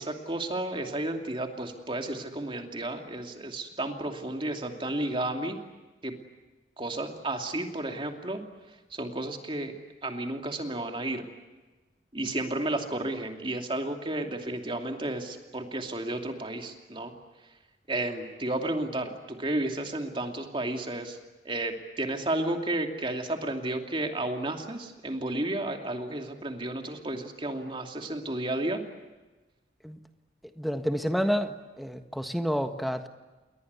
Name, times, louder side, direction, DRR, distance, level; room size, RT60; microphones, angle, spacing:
voice 1, 0.0-5.6 6.0-6.1 6.8-8.4 8.9-9.7 10.0-11.3 12.1-17.1 17.9-21.2 21.4-28.8, right 1 dB, 30° right, 4 dB, 2.7 m, -32 dB
voice 2, 30.6-33.1, equal, ahead, 6 dB, 1.5 m, -29 dB
29.5 x 21.5 x 8.3 m, 1.2 s
head